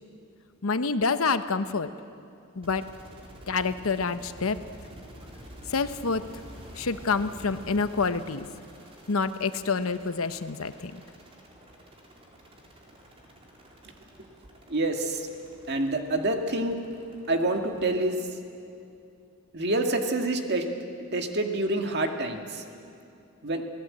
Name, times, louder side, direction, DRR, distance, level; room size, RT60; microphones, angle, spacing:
voice 1, 0.6-1.9 2.6-2.8 3.5-4.6 5.7-6.2 6.8-8.5 9.1-11.0, left 4 dB, 70° left, 11 dB, 0.9 m, -27 dB
sound 1, 2.6-18.1, equal, 25° right, 3.9 m, -48 dB
voice 2, 14.7-15.3 15.7-16.8 17.3-18.2 19.5-20.6 21.1-22.6 23.4-23.6, right 2 dB, 50° right, 4 dB, 2.0 m, -27 dB
28.5 x 17.5 x 8.6 m, 2.6 s
head